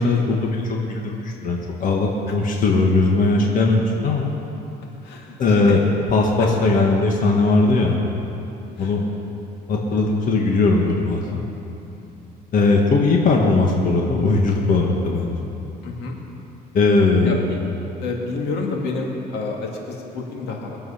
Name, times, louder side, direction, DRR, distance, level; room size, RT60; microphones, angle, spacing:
voice 1, 0.0-4.3 5.4-5.8 6.1-8.0 8.8-9.1 9.7-11.4 12.5-15.3 16.7-17.4, left 3 dB, 50° left, 0 dB, 1.8 m, -19 dB
voice 2, 5.0-5.8 6.4-6.5 8.8-9.1 11.9-12.2 15.8-16.2 17.2-17.6 18.0-20.8, left 3 dB, 80° left, 0 dB, 2.2 m, -29 dB
22.5 x 7.8 x 5.8 m, 2.8 s
cardioid pair, 110°, 17 cm